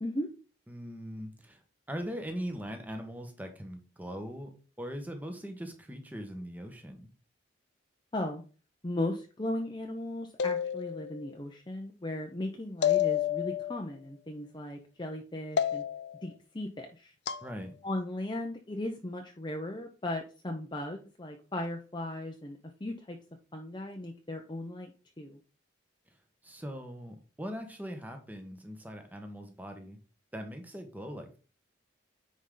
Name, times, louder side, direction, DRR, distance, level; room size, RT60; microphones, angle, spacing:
voice 1, 0.0-0.3 8.1-8.4 8.8-15.8 16.2-17.1 17.8-23.2 23.5-24.9 25.2-25.4, left 1 dB, 25° left, 3 dB, 0.8 m, -37 dB
voice 2, 0.7-1.6 1.9-4.5 4.8-7.1 17.4-17.7 26.4-30.0 30.3-31.4, equal, 10° right, 4 dB, 1.3 m, -40 dB
sound 1, 10.4-11.2 12.8-13.8 15.6-16.2 17.3-17.5, left 9 dB, 60° left, 0.5 m, -29 dB
9.6 x 4.9 x 3.9 m, 0.36 s
head